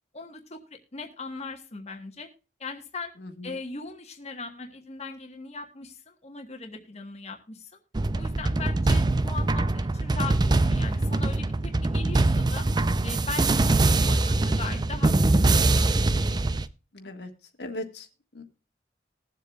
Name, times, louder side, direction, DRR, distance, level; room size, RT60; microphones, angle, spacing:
voice 1, 0.1-2.3 2.6-3.1 3.4-7.8 8.1-12.7 13.0-16.3, left 4 dB, 40° left, 3 dB, 1.2 m, -39 dB
voice 2, 3.2-3.6 16.9-17.3 17.6-18.1 18.3-18.4, left 1 dB, 75° left, 4 dB, 1.6 m, -38 dB
sound 1, 7.9-16.6, right 2 dB, 25° right, 0.5 m, -23 dB
20.5 x 7.5 x 2.3 m, 0.33 s
head